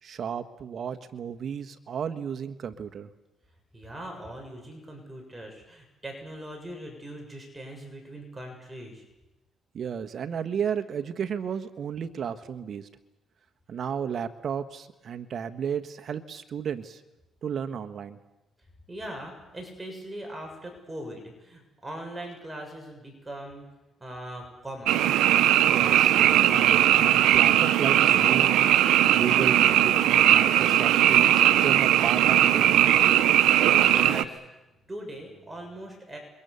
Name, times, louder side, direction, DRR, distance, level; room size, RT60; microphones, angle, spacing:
voice 1, 0.0-3.1 9.7-12.9 13.7-17.0 17.4-18.2 25.7-28.6 29.1-33.0, right 7 dB, 55° right, 8 dB, 1.4 m, -33 dB
voice 2, 3.7-9.0 18.9-23.7 24.0-25.0 33.2-34.6 34.9-36.2, right 1 dB, 15° right, 2 dB, 7.1 m, -41 dB
Frog, 24.9-34.2, right 12 dB, 90° right, 0.9 m, -19 dB
27.0 x 23.5 x 7.0 m, 0.99 s
cardioid pair, 90°, 0 cm